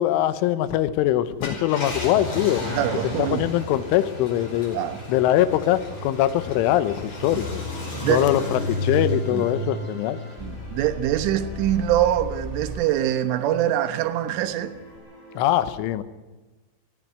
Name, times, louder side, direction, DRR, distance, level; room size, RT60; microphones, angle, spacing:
voice 1, 0.0-2.6 3.2-4.8 5.1-7.6 8.1-10.2 15.4-16.0, left 12 dB, 90° left, 3.4 m, -22 dB
Car, 1.3-12.1 12.6-12.7 14.7-15.0, left 1 dB, 35° left, 6.2 m, -33 dB
sound 1, 1.8-15.5, left 1 dB, 60° left, 9.4 m, -47 dB
voice 2, 2.7-3.5 4.7-5.0 7.3-7.4 8.0-8.3 9.3-9.5 10.4-14.8, right 12 dB, 85° right, 3.7 m, -24 dB
sound 2, 3.1-12.8, equal, 15° right, 1.0 m, -41 dB
19.5 x 14.0 x 9.5 m
omnidirectional pair, 5.5 m